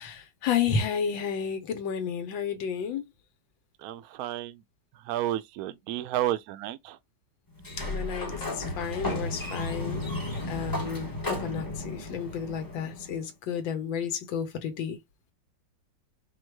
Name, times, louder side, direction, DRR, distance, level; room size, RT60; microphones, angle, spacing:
voice 1, 0.0-3.0 7.8-10.1 10.5-15.0, left 7 dB, 85° left, 1.5 m, -32 dB
voice 2, 3.8-4.6 5.1-7.0, right 13 dB, 75° right, 0.8 m, -31 dB
Sliding door, 7.6-13.2, left 2 dB, 15° left, 0.7 m, -34 dB
4.5 x 2.3 x 4.5 m
omnidirectional pair, 2.0 m